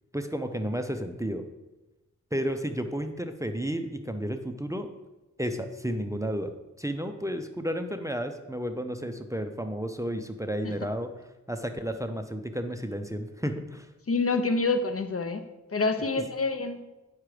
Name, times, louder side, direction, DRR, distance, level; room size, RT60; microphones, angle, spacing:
voice 1, 0.1-1.4 2.3-4.9 5.4-6.5 6.8-11.1 11.5-13.9, equal, 10° right, 6 dB, 0.6 m, -32 dB
voice 2, 14.1-15.4 15.7-16.8, left 3 dB, 45° left, 9 dB, 0.7 m, -27 dB
9.1 x 5.9 x 4.9 m, 1.0 s
wide cardioid pair, 85°, 31 cm